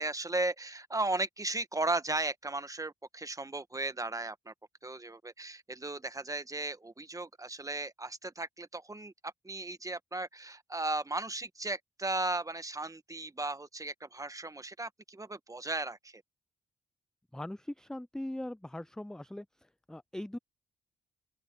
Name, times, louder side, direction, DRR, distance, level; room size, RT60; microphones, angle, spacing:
voice 1, 0.0-4.5 4.8-16.2, right 2 dB, 20° right, 1.7 m, -36 dB
voice 2, 17.3-19.5 19.9-20.4, left 1 dB, 5° left, 0.5 m, -40 dB
open air
hypercardioid pair, 40°, 16 cm